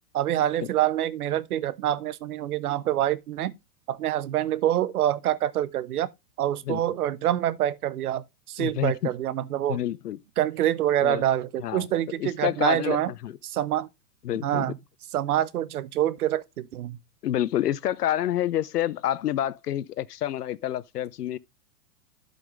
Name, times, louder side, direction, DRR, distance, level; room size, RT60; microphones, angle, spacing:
voice 1, 0.1-3.5 3.9-6.1 6.4-9.8 10.4-13.1 13.4-13.9 14.4-14.8 15.1-17.0, right 12 dB, 65° right, 0.9 m, -26 dB
voice 2, 8.6-9.1 9.7-10.2 11.0-11.2 11.6-11.9 12.2-13.3 14.2-14.7 17.2-21.4, left 12 dB, 75° left, 0.7 m, -28 dB
12.0 x 5.3 x 3.1 m
hypercardioid pair, 105°, 47 cm